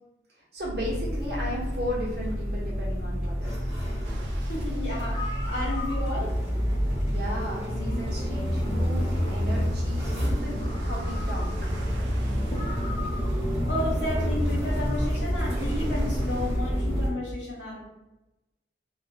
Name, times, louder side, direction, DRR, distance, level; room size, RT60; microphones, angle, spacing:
voice 1, 0.5-3.5 7.0-11.5, equal, 60° right, -5 dB, 0.9 m, -35 dB
sound 1, 0.6-17.1, equal, ahead, 1.0 m, -28 dB
sound 2, 4.0-16.5, right 2 dB, 80° right, 0.4 m, -47 dB
voice 2, 4.4-6.4 12.5-12.7 13.7-17.9, left 1 dB, 75° left, -4 dB, 0.6 m, -32 dB
sound 3, 5.1-6.4 7.8-7.9 10.1-10.2 10.6-11.8 12.1-12.2 12.5-13.5 14.5-15.1, left 3 dB, 25° left, 0.4 m, -40 dB
2.3 x 2.1 x 2.8 m, 0.97 s
head